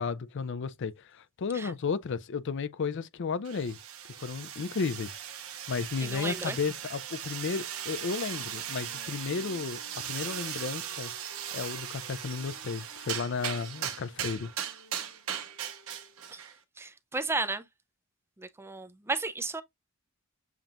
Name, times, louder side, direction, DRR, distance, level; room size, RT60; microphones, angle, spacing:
voice 1, 0.0-3.8 4.1-11.1 11.5-14.5, left 5 dB, 55° left, 0.4 m, -33 dB
sound 1, 3.4-16.6, right 9 dB, 70° right, 1.1 m, -38 dB
voice 2, 6.0-6.6 16.3-16.4 16.8-17.6 18.4-19.6, right 3 dB, 10° right, 0.5 m, -33 dB
Wind instrument woodwind instrument, 7.5-16.2, left 3 dB, 85° left, 2.4 m, -56 dB
7.2 x 2.8 x 2.5 m
head